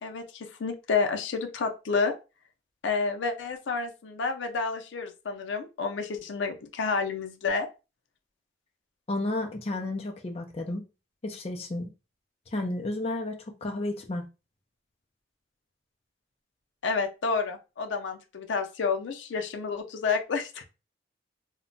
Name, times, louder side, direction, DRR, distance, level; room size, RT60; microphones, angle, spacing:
voice 1, 0.0-2.2 2.8-7.7 16.8-20.6, left 4 dB, 85° left, 0.5 m, -30 dB
voice 2, 9.1-10.8 11.2-11.9 12.5-14.3, left 2 dB, 35° left, 0.4 m, -32 dB
2.1 x 2.1 x 3.8 m
head